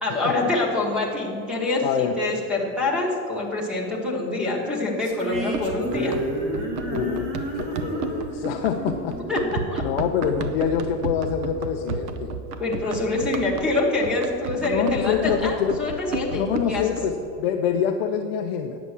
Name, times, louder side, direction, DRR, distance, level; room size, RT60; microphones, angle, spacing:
voice 1, 0.0-6.2 9.3-9.8 12.6-16.8, left 2 dB, ahead, -2 dB, 1.1 m, -25 dB
voice 2, 1.8-2.2 6.8-9.2 9.8-12.3 14.6-15.8 16.3-18.8, left 8 dB, 40° left, 3 dB, 0.4 m, -26 dB
sound 1, 5.0-10.4, right 2 dB, 35° right, 1.5 m, -32 dB
Run, 5.3-17.0, right 3 dB, 75° right, 1.0 m, -33 dB
9.4 x 6.9 x 7.3 m, 2.6 s
supercardioid pair, 175°, 48 cm